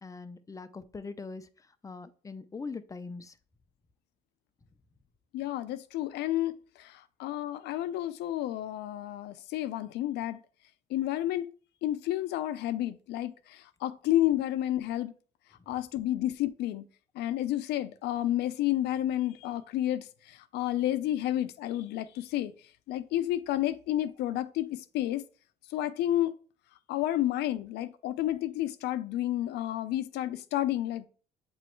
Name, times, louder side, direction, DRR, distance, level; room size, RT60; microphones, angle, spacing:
voice 1, 0.0-3.4 15.7-15.8, left 4 dB, 20° left, 0.6 m, -42 dB
voice 2, 5.3-10.4 10.9-11.5 11.8-15.1 15.7-16.8 17.2-22.5 22.9-25.2 25.7-26.3 26.9-31.1, left 13 dB, 80° left, 0.6 m, -31 dB
8.0 x 3.1 x 4.4 m
cardioid pair, 110°, 17 cm